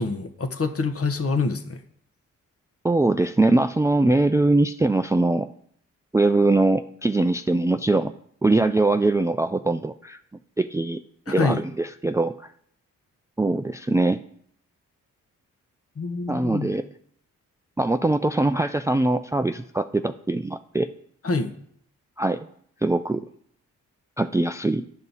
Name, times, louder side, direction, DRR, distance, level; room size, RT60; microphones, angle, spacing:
voice 1, 0.0-1.8 11.3-11.6 16.0-16.7 21.2-21.5, left 3 dB, 40° left, 8 dB, 1.1 m, -26 dB
voice 2, 2.8-5.5 6.1-8.1 8.4-10.2 10.6-12.3 13.4-14.2 16.3-16.9 17.8-20.9 22.2-22.5 22.8-23.2 24.2-24.9, right 2 dB, 10° right, 10 dB, 0.4 m, -22 dB
10.5 x 5.5 x 4.1 m, 0.64 s
supercardioid pair, 45°, 34 cm